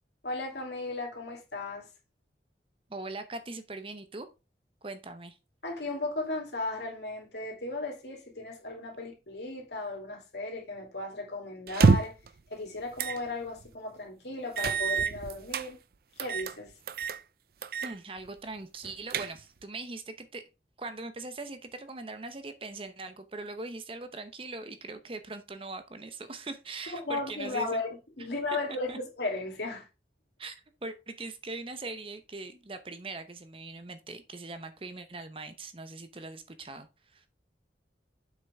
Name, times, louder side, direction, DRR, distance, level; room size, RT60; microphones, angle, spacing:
voice 1, 0.2-1.9 5.6-12.1 12.5-15.8 16.2-16.7 26.9-27.9 28.2-29.9, left 2 dB, 70° left, 2.9 m, -35 dB
voice 2, 2.9-4.3 4.8-5.4 17.8-20.4 20.8-27.8 28.9-29.0 30.4-37.2, right 3 dB, 30° right, 0.8 m, -41 dB
sound 1, 11.7-12.3 13.0-13.2 13.6-13.7 14.6-15.7 16.2-16.5 16.9-17.2 17.6-17.9 18.2-18.3 18.8-19.6, right 4 dB, 55° right, 0.5 m, -27 dB
7.4 x 6.0 x 3.5 m
head